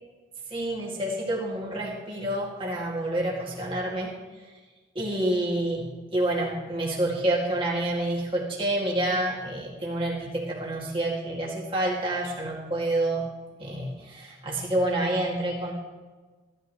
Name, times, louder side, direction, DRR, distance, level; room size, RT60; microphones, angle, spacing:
voice 1, 0.5-4.2 4.9-13.3 13.6-15.7, right 1 dB, 25° right, -4 dB, 2.2 m, -28 dB
14.5 x 12.0 x 3.1 m, 1.3 s
head